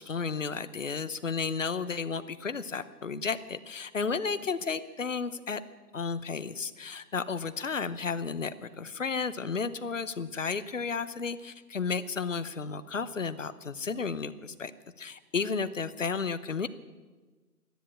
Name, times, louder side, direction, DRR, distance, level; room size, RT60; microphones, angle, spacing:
voice 1, 0.0-5.6 5.9-14.7 15.0-16.7, left 5 dB, 50° left, 14 dB, 0.8 m, -33 dB
13.5 x 10.5 x 8.7 m, 1.3 s
hypercardioid pair, 175°, 47 cm